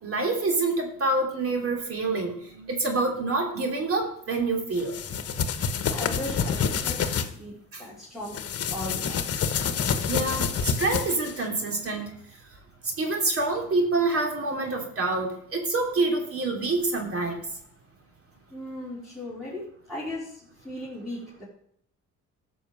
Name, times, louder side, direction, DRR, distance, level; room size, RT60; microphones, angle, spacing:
voice 1, 0.0-4.9 7.7-7.8 10.1-12.2 12.8-17.4, right 3 dB, 50° right, 2 dB, 3.0 m, -27 dB
sound 1, 4.8-7.3 8.3-11.4, left 6 dB, 50° left, 1.3 m, -28 dB
voice 2, 5.9-9.3 18.5-21.5, left 1 dB, ahead, -7 dB, 4.4 m, -38 dB
12.5 x 6.1 x 7.5 m, 0.67 s
cardioid pair, 90°, 30 cm